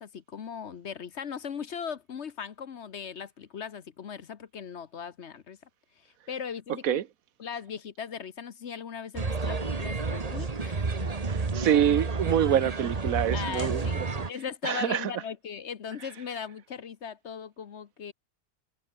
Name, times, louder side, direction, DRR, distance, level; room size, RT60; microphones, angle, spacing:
voice 1, 0.0-5.6 6.0-7.0 7.4-11.2 13.3-14.0 14.3-18.1, left 7 dB, 55° left, 1.2 m, -38 dB
sound 1, 9.1-14.3, right 4 dB, 30° right, 1.3 m, -30 dB
voice 2, 11.5-13.9 14.6-15.1, right 10 dB, 75° right, 1.3 m, -25 dB
omnidirectional pair, 1.5 m